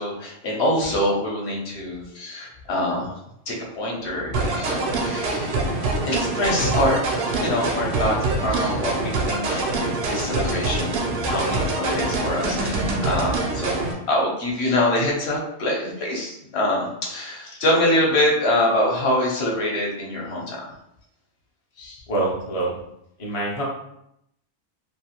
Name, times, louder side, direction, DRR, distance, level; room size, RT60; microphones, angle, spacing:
voice 1, 0.0-3.1 3.5-5.6 6.0-20.7 21.8-22.0, left 1 dB, 65° left, -2 dB, 0.9 m, -25 dB
sound 1, 4.3-13.9, right 2 dB, 80° right, 0.9 m, -25 dB
voice 2, 22.1-22.7 23.2-23.6, right 2 dB, 50° left, -4 dB, 0.4 m, -25 dB
2.6 x 2.4 x 2.8 m, 0.78 s
omnidirectional pair, 1.3 m